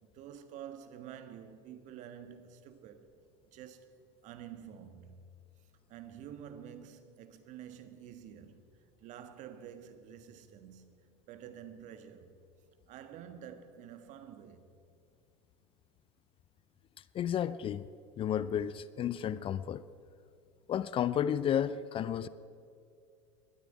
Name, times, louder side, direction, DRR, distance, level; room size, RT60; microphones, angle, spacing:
voice 1, 0.0-3.1 3.5-5.3 5.9-8.6 9.0-12.4 12.9-14.7, right 9 dB, 50° right, 1.4 m, -49 dB
voice 2, 17.1-17.9 18.2-19.8 20.7-22.3, left 9 dB, 35° left, 0.5 m, -32 dB
20.0 x 12.5 x 4.9 m
hypercardioid pair, 80°, 16 cm